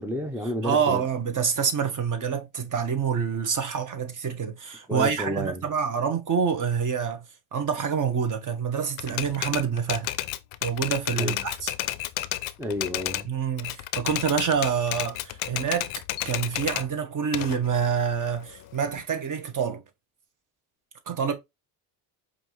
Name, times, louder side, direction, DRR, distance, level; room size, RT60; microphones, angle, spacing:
voice 1, 0.0-1.0 4.9-5.7 11.2-11.4 12.6-13.3, equal, 5° right, 0.5 m, -31 dB
voice 2, 0.6-7.2 7.5-10.1 10.6-11.7 13.2-15.9 16.2-19.8 21.1-21.3, right 6 dB, 40° right, 1.1 m, -27 dB
Typewriter, 9.0-13.3 13.6-16.9 17.3-19.0, left 16 dB, 80° left, 0.6 m, -31 dB
5.1 x 2.7 x 3.0 m
supercardioid pair, 90°, 48 cm